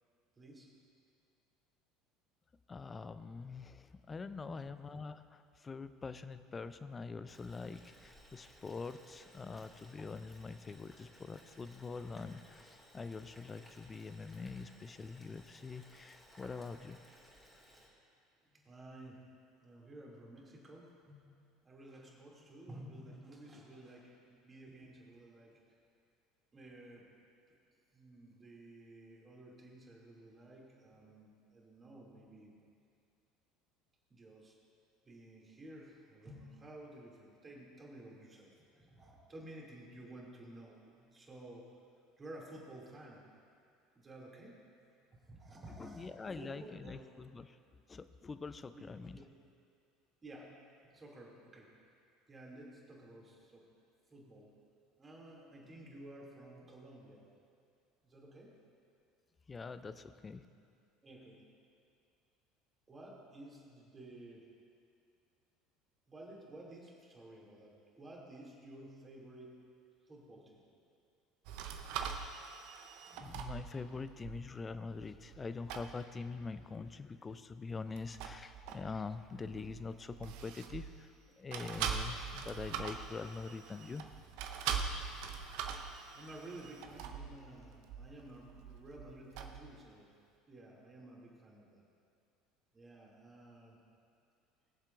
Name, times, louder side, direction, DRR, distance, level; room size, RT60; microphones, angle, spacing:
voice 1, 0.4-0.7 4.4-4.6 18.4-19.3 19.6-21.2 21.6-25.6 26.5-27.0 27.5-27.6 27.9-32.5 34.1-34.6 35.1-41.7 42.2-43.2 43.9-44.9 45.2-47.1 48.8-49.2 50.2-50.6 50.8-51.7 52.3-53.7 54.1-54.5 55.0-57.3 58.0-58.5 59.8-60.0 61.0-61.4 62.9-64.5 66.1-69.6 70.1-70.6 86.1-90.1 90.5-91.8 92.7-93.8, right 1 dB, 25° right, -3 dB, 2.5 m, -53 dB
voice 2, 2.7-17.0 45.8-47.6 47.9-49.2 59.5-60.4 73.1-81.1 81.4-84.0, left 4 dB, 25° left, 12 dB, 0.4 m, -44 dB
Boiling, 7.3-17.9, equal, 5° left, 2.3 m, -60 dB
sound 1, 71.4-75.4 75.7-76.0 77.9-81.2 81.5-89.8, right 7 dB, 60° right, 0.7 m, -43 dB
20.5 x 7.3 x 2.5 m, 2.4 s
hypercardioid pair, 70°, 0 cm